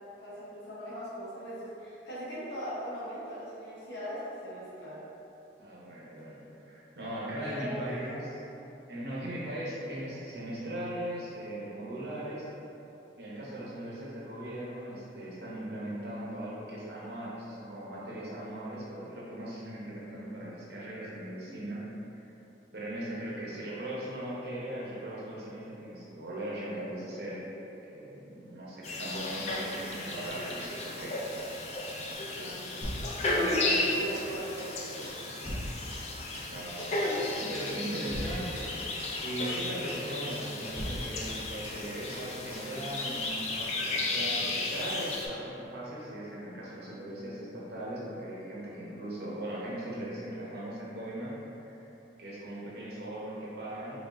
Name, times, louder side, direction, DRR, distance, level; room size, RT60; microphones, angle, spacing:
voice 1, 0.2-5.0 7.4-8.2 29.0-29.3 32.3-32.7 33.9-35.3, equal, 75° left, -10 dB, 0.9 m, -40 dB
voice 2, 5.6-8.3 8.9-12.5 13.2-21.8 22.1-22.2 22.7-27.4 27.9-31.1 33.2-34.5 36.5-51.3 51.6-51.9 52.2-54.0, right 1 dB, 60° right, -6 dB, 0.8 m, -39 dB
sound 1, 28.8-45.3, left 2 dB, 35° left, 0.3 m, -34 dB
sound 2, 32.8-33.9 34.1-34.3 34.6-34.8 35.0-36.5 36.8-37.0 37.2-37.4 37.7-37.9 38.1-39.2 39.4-39.6 39.9-40.1 40.3-40.5 40.8-41.8 42.1-42.3 42.5-42.7 43.0-43.2, equal, 10° right, 1.0 m, -41 dB
3.9 x 3.3 x 2.5 m, 2.9 s
head